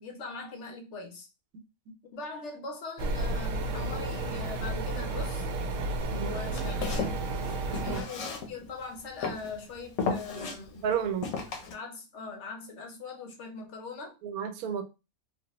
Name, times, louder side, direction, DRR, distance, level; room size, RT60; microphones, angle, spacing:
voice 1, 0.0-1.3 2.1-5.5 6.1-7.2 7.8-10.9 11.7-14.2, left 3 dB, 65° left, 0.8 m, -41 dB
sound 1, 3.0-8.0, right 2 dB, 70° right, 0.9 m, -32 dB
voice 2, 6.1-6.7 7.9-8.0 10.8-11.3 14.2-14.8, right 8 dB, 90° right, 1.1 m, -32 dB
Walk footsteps, 6.5-8.8 9.2-9.6 10.0-10.6 11.2-11.7, left 5 dB, 80° left, 1.1 m, -34 dB
3.4 x 2.0 x 2.9 m
omnidirectional pair, 1.5 m